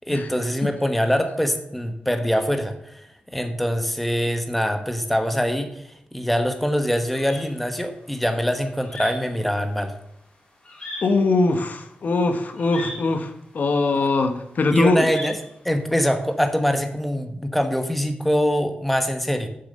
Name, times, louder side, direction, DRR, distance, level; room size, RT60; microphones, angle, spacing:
voice 1, 0.1-3.1 3.3-5.8 6.1-9.9 14.7-15.4 15.6-19.5, equal, 5° left, 6 dB, 1.1 m, -23 dB
sound 1, 6.5-16.4, left 1 dB, 30° left, 4.4 m, -39 dB
voice 2, 11.0-15.1, left 3 dB, 60° left, 7 dB, 1.1 m, -21 dB
7.9 x 6.8 x 6.6 m, 0.77 s
wide cardioid pair, 100°, 3 cm